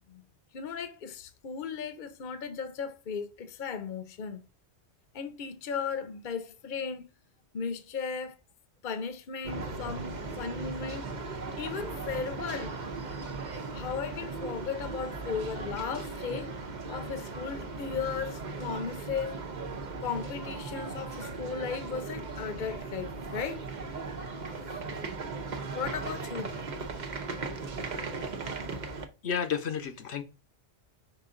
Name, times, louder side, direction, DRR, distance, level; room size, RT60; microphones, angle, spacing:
voice 1, 0.5-4.4 5.1-7.1 7.5-8.4 8.8-11.1 11.6-12.7 13.7-16.5 16.9-19.4 20.0-23.9 25.7-26.5, left 6 dB, 50° left, 0.9 m, -36 dB
sound 1, 9.4-29.1, right 3 dB, 45° right, 0.9 m, -38 dB
voice 2, 29.2-30.2, left 7 dB, 70° left, 1.0 m, -31 dB
5.2 x 5.0 x 3.7 m
omnidirectional pair, 1.2 m